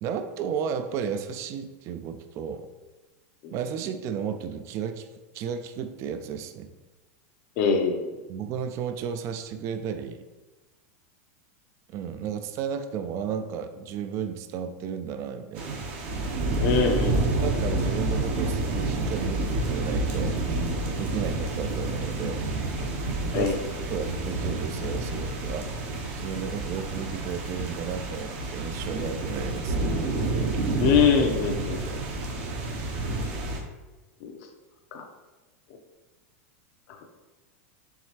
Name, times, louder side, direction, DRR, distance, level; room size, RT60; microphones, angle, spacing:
voice 1, 0.0-2.7 3.5-5.1 5.3-6.7 8.3-10.2 11.9-15.7 17.4-20.4 21.0-22.4 23.2-23.6 23.9-25.7 26.2-29.9 31.9-32.0, right 7 dB, 40° right, 8 dB, 0.3 m, -33 dB
voice 2, 7.6-8.1 16.6-17.3 23.3-23.6 30.8-31.8 34.2-34.3 34.9-35.0, left 5 dB, 55° left, 2 dB, 0.6 m, -23 dB
sound 1, 15.5-33.6, right 2 dB, 60° right, 0.8 m, -29 dB
4.6 x 3.2 x 2.9 m, 1.2 s
supercardioid pair, 135°, 8 cm